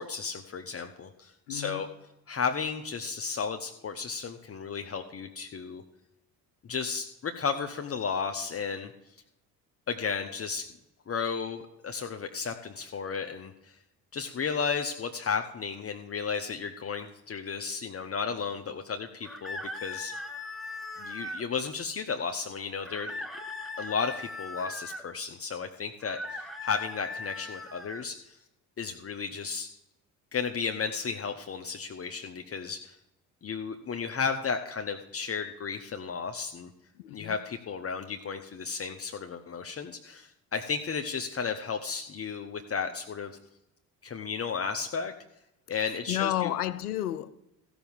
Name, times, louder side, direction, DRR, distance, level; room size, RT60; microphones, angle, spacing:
voice 1, 0.0-1.9 2.3-5.8 6.6-8.9 9.9-10.6 11.1-13.8 14.1-20.1 21.0-23.1 23.8-28.4 28.8-29.7 30.3-33.0 33.4-36.7 37.1-43.3 44.0-45.1 45.7-46.5, left 5 dB, 30° left, 1.0 m, -33 dB
voice 2, 1.5-1.8 37.0-37.4 46.1-47.3, left 13 dB, 90° left, 0.7 m, -31 dB
sound 1, 19.2-21.5 22.8-25.0 26.0-28.1, left 2 dB, ahead, 1.4 m, -39 dB
14.5 x 6.0 x 7.2 m
hypercardioid pair, 55°, 44 cm